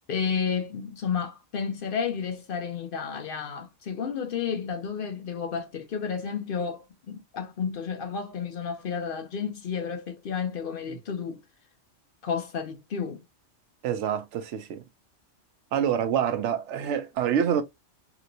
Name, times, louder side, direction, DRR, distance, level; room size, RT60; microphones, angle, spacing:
voice 1, 0.1-11.4 12.2-13.2, left 6 dB, 60° left, 0.7 m, -31 dB
voice 2, 13.8-14.8 15.7-17.6, right 8 dB, 80° right, 0.9 m, -26 dB
2.9 x 2.9 x 2.5 m
omnidirectional pair, 1.2 m